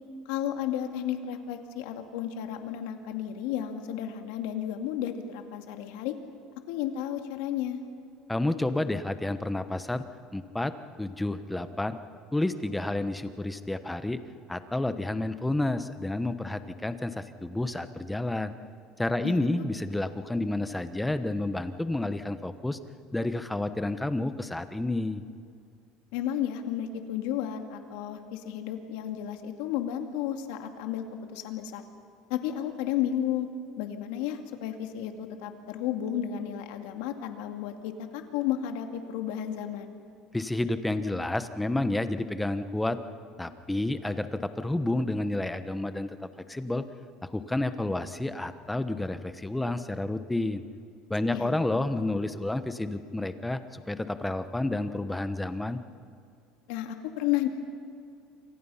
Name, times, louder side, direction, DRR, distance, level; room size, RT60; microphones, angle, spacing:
voice 1, 0.3-6.1 6.7-7.8 19.2-19.4 26.1-31.0 31.3-31.8 32.3-33.5 33.8-40.0 51.3-51.5 56.7-57.5, left 11 dB, 80° left, 5 dB, 2.4 m, -32 dB
voice 2, 8.3-10.0 10.3-10.7 11.0-12.0 12.3-14.2 14.5-18.5 19.0-22.8 23.1-25.2 40.3-43.0 43.4-46.8 47.3-50.6 51.1-55.8, left 2 dB, 5° left, 10 dB, 1.0 m, -30 dB
28.0 x 26.0 x 5.7 m, 2.4 s
cardioid pair, 145°, 0 cm